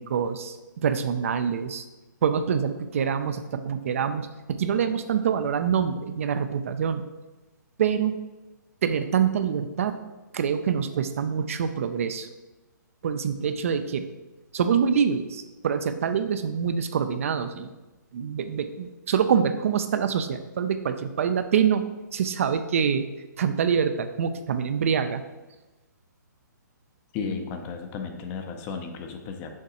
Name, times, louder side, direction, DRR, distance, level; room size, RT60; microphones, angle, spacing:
voice 1, 0.1-0.6 0.8-1.9 2.2-7.0 7.8-8.2 8.8-10.0 10.3-12.3 13.0-14.1 14.5-17.7 18.1-23.1 23.4-25.2, right 7 dB, 45° right, 10 dB, 0.4 m, -25 dB
voice 2, 27.1-29.5, left 5 dB, 15° left, 5 dB, 0.5 m, -34 dB
6.5 x 4.6 x 4.2 m, 1.1 s
hypercardioid pair, 160°, 11 cm